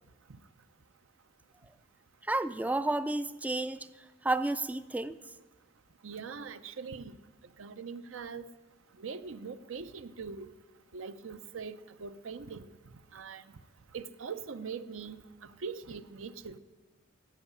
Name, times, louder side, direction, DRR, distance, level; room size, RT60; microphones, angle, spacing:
voice 1, 2.2-3.9 4.2-5.2, right 2 dB, 5° right, 14 dB, 0.3 m, -31 dB
voice 2, 6.0-7.2 7.6-8.5 9.0-10.5 10.9-12.7 13.1-13.4 13.9-16.6, right 5 dB, 75° right, 12 dB, 0.6 m, -42 dB
13.0 x 8.0 x 9.8 m, 1.3 s
head